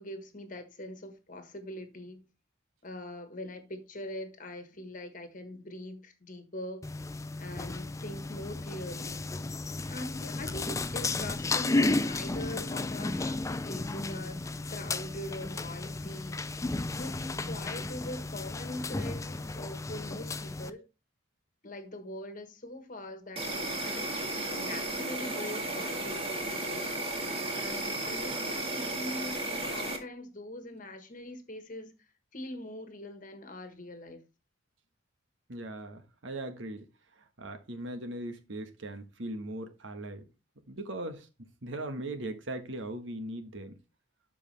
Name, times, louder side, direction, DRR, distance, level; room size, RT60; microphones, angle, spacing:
voice 1, 0.0-2.2 2.8-6.9 7.4-9.2 9.9-16.4 16.9-20.9 21.6-24.1 24.5-27.1 27.5-31.9 32.3-34.2, left 1 dB, 40° left, 1.4 m, -42 dB
sound 1, 6.8-20.7, left 2 dB, 15° left, 0.4 m, -33 dB
Insect, 23.4-30.0, right 2 dB, 30° right, 1.8 m, -34 dB
voice 2, 35.5-36.8 37.2-40.3 40.7-43.7, right 1 dB, 70° right, 1.3 m, -39 dB
12.5 x 4.9 x 3.3 m
head